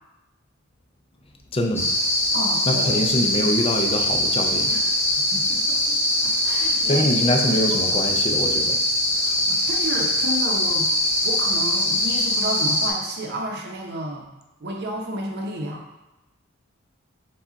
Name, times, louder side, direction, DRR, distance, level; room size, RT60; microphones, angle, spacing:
voice 1, 1.5-1.9 2.7-4.7 6.9-8.8, left 1 dB, 25° left, 3 dB, 0.4 m, -24 dB
sound 1, 1.7-12.9, left 1 dB, 10° left, 0.8 m, -22 dB
voice 2, 2.3-3.1 4.7-6.0 6.2-8.0 9.2-10.9 11.2-14.3 14.6-15.8, right 1 dB, 50° right, 1 dB, 0.7 m, -32 dB
4.8 x 2.3 x 4.0 m, 0.97 s
head